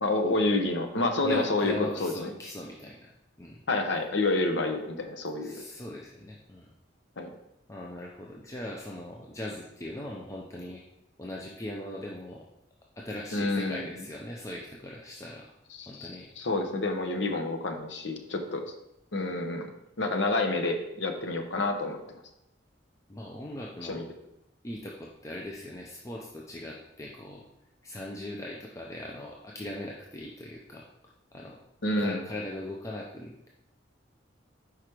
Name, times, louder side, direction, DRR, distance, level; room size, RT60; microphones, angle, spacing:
voice 1, 0.0-1.7 2.0-2.3 3.7-5.6 7.2-7.3 13.3-13.9 15.8-18.7 19.1-19.7 20.0-22.0 23.8-24.0 31.8-32.2, left 2 dB, 70° left, 4 dB, 0.8 m, -28 dB
voice 2, 1.2-3.1 3.4-3.6 5.4-6.7 7.7-10.8 11.2-12.5 13.0-15.5 15.9-16.3 23.1-24.1 24.6-27.4 27.8-30.9 31.3-31.6 32.0-33.3, left 1 dB, 15° left, -2 dB, 0.5 m, -39 dB
4.9 x 4.8 x 4.5 m, 0.86 s
head